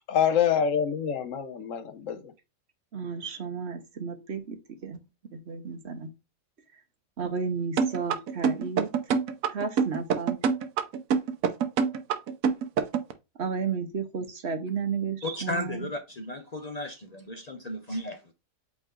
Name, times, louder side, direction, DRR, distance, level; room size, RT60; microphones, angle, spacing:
voice 1, 0.1-2.3, left 8 dB, 75° left, 1.1 m, -26 dB
voice 2, 2.9-5.1 5.3-6.1 7.2-8.9 9.5-10.4 13.4-15.9, right 5 dB, 55° right, 1.1 m, -33 dB
sound 1, 7.8-13.1, right 6 dB, 80° right, 1.2 m, -25 dB
voice 3, 15.2-18.3, left 1 dB, 40° left, 0.6 m, -35 dB
8.1 x 3.1 x 3.8 m
omnidirectional pair, 1.4 m